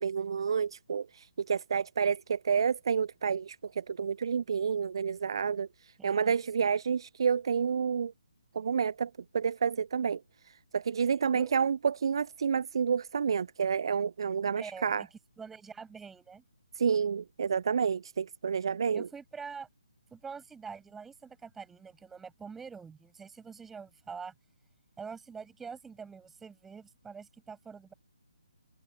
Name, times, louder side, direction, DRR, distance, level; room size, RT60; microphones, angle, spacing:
voice 1, 0.0-8.1 8.5-15.0 16.8-19.1, right 6 dB, 45° right, 0.6 m, -29 dB
voice 2, 6.0-6.7 11.3-11.5 14.6-15.1 15.4-16.4 18.9-19.7 20.1-24.3 25.0-27.9, right 5 dB, 5° right, 7.7 m, -45 dB
figure-of-eight pair, 140°, 3 cm